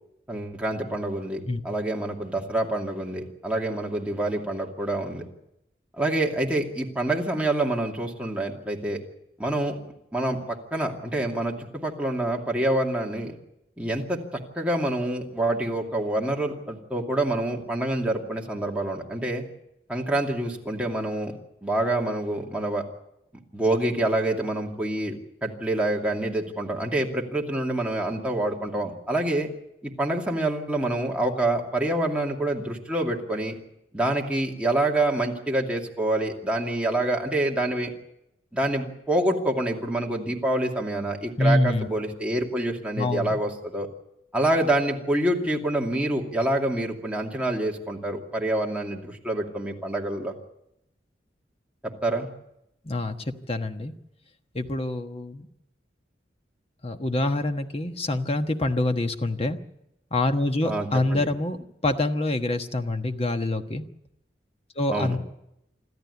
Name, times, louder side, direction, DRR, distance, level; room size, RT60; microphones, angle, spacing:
voice 1, 0.3-5.2 6.0-9.0 9.4-9.8 10.1-13.3 13.8-14.2 14.6-19.4 19.9-21.3 21.6-22.8 23.5-29.5 29.8-33.6 33.9-37.9 38.5-43.9 44.3-50.3 52.0-52.3 60.6-61.3 64.9-65.2, right 1 dB, 5° right, -1 dB, 2.5 m, -27 dB
voice 2, 41.4-41.9 43.0-43.4 52.8-53.9 54.5-55.5 56.8-59.6 60.1-61.6 61.8-63.8 64.8-65.2, left 2 dB, 35° left, 7 dB, 1.2 m, -26 dB
26.5 x 13.5 x 8.3 m, 0.84 s
head